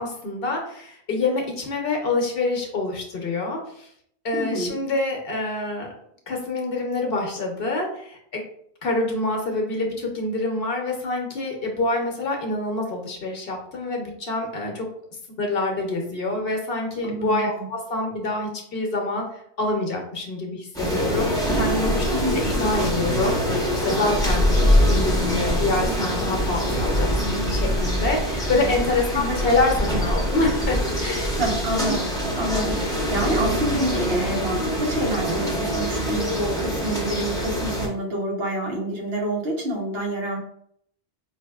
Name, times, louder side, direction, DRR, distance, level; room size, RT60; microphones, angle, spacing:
voice 1, 0.0-3.9 4.2-5.9 6.3-8.4 8.8-14.9 15.4-19.3 19.6-22.0 22.3-31.3, left 2 dB, 60° left, 1 dB, 1.0 m, -26 dB
voice 2, 4.3-4.7 17.0-17.7 22.1-22.4 29.1-29.4 31.4-40.4, right 1 dB, 65° right, -1 dB, 1.1 m, -27 dB
sound 1, 20.7-37.9, equal, 5° left, 0.8 m, -24 dB
4.9 x 2.6 x 2.3 m, 0.68 s
omnidirectional pair, 1.1 m